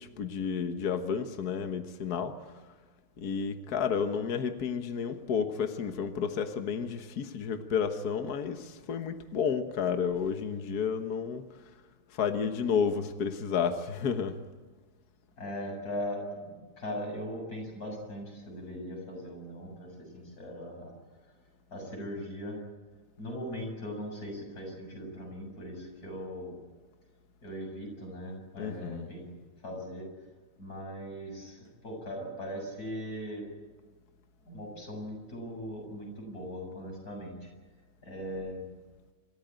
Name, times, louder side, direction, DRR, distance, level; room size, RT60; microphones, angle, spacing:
voice 1, 0.0-2.5 3.2-11.4 12.1-14.4 28.6-29.1, left 6 dB, 65° left, 7 dB, 0.9 m, -31 dB
voice 2, 15.4-19.9 20.1-20.9 21.7-22.6 23.2-26.6 27.4-29.3 29.6-30.0 30.6-31.6 31.8-33.4 34.5-37.4 38.0-38.7, equal, 30° left, 1 dB, 7.6 m, -39 dB
27.0 x 14.5 x 8.9 m, 1.4 s
omnidirectional pair, 3.4 m